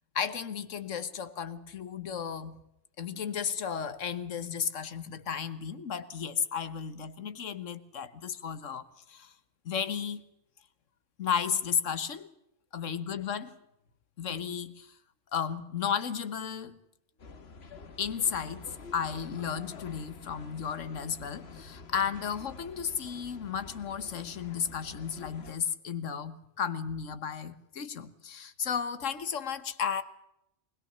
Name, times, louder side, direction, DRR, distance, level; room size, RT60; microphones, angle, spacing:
voice 1, 0.1-2.6 3.0-9.3 9.6-10.2 11.2-12.3 12.7-13.6 14.2-14.9 15.3-16.8 18.0-30.0, left 7 dB, 85° left, 1.5 m, -34 dB
sound 1, 17.2-25.5, left 4 dB, 55° left, 1.5 m, -48 dB
21.5 x 20.5 x 7.0 m
omnidirectional pair, 1.3 m